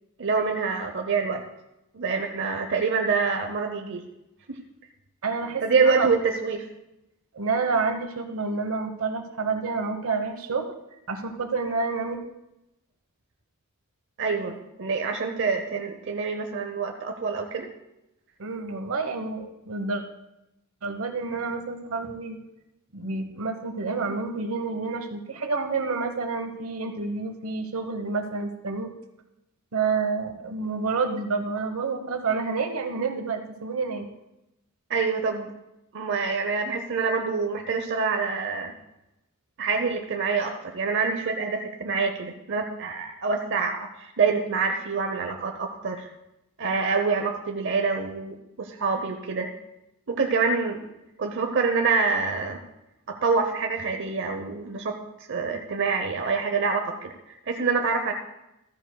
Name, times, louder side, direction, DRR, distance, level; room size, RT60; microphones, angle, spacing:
voice 1, 0.2-1.4 1.9-4.1 4.5-4.6 5.6-6.7 14.2-17.7 34.9-35.5 35.9-38.7 39.6-46.1 46.6-49.5 50.1-50.8 51.2-52.6 53.1-55.0 55.3-58.1, right 4 dB, 60° right, 4 dB, 0.8 m, -26 dB
voice 2, 5.2-6.1 7.3-10.7 11.1-12.2 18.4-20.0 20.8-22.4 22.9-28.9 29.7-34.1, right 4 dB, 80° right, 7 dB, 1.1 m, -29 dB
14.0 x 13.5 x 2.3 m, 0.89 s
head